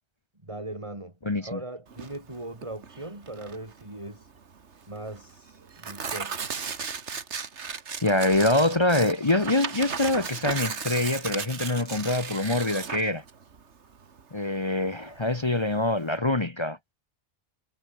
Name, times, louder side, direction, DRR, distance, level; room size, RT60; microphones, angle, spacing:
voice 1, 0.4-4.3 4.9-6.4, right 2 dB, 25° right, 3.6 m, -39 dB
voice 2, 1.2-1.6 8.0-13.2 14.3-16.8, left 2 dB, 25° left, 1.0 m, -25 dB
Tearing, 1.9-16.2, right 6 dB, 70° right, 1.8 m, -36 dB
omnidirectional pair, 1.2 m